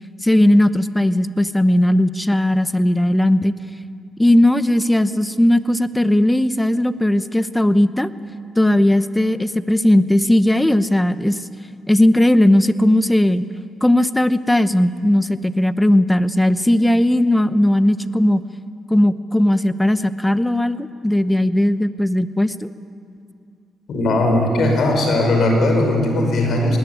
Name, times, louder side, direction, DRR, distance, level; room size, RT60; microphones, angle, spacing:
voice 1, 0.2-3.5 4.2-8.1 8.6-11.4 11.9-13.4 13.8-18.4 18.9-22.7, left 1 dB, 5° left, 13 dB, 0.8 m, -17 dB
voice 2, 23.9-26.8, left 1 dB, 60° left, 3 dB, 5.7 m, -18 dB
20.0 x 18.5 x 9.6 m, 2.5 s
cardioid pair, 90°, 0 cm